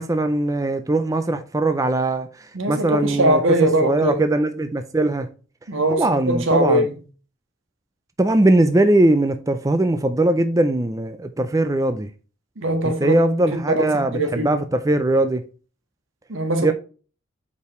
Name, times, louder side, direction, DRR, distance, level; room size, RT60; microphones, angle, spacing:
voice 1, 0.0-3.4 3.8-5.3 6.0-6.9 8.2-12.1 13.0-15.4 16.6-16.7, right 2 dB, 15° right, 0.4 m, -20 dB
voice 2, 2.5-4.2 5.7-6.9 12.6-13.3 13.7-14.6 16.3-16.7, right 1 dB, 80° right, 1.5 m, -21 dB
8.3 x 4.8 x 3.1 m
head